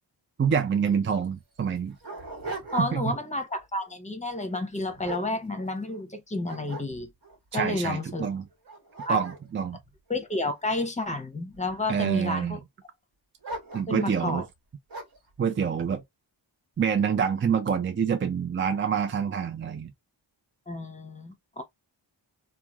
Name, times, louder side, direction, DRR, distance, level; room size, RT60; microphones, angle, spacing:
voice 1, 0.4-2.0 2.8-3.1 7.5-8.5 9.1-9.8 11.9-12.6 13.7-14.5 15.4-16.0 16.8-19.9, right 7 dB, 30° right, 0.4 m, -26 dB
Dog, 0.9-1.0 1.6-3.2 3.6-3.9 4.5-6.0 6.4-7.4 8.0-8.1 8.5-10.9 11.5-12.1 13.4-14.2 14.9-15.3, right 2 dB, 65° right, 1.3 m, -41 dB
voice 2, 2.7-7.1 7.5-8.3 9.0-9.2 10.1-12.6 13.9-14.4 20.7-21.6, left 2 dB, 15° left, 0.7 m, -30 dB
3.0 x 2.3 x 2.3 m
wide cardioid pair, 85°, 45 cm